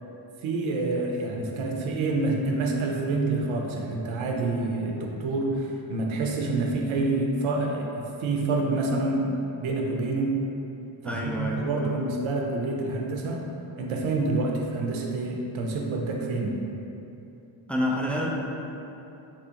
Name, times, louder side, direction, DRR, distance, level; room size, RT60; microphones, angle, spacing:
voice 1, 0.4-7.9 8.2-10.3 11.0-13.4 13.8-16.5, right 2 dB, 75° right, 0 dB, 0.7 m, -27 dB
voice 2, 11.0-12.0 17.7-18.3, left 1 dB, 5° left, -3 dB, 0.3 m, -28 dB
3.6 x 3.0 x 2.9 m, 2.9 s
cardioid pair, 70°, 48 cm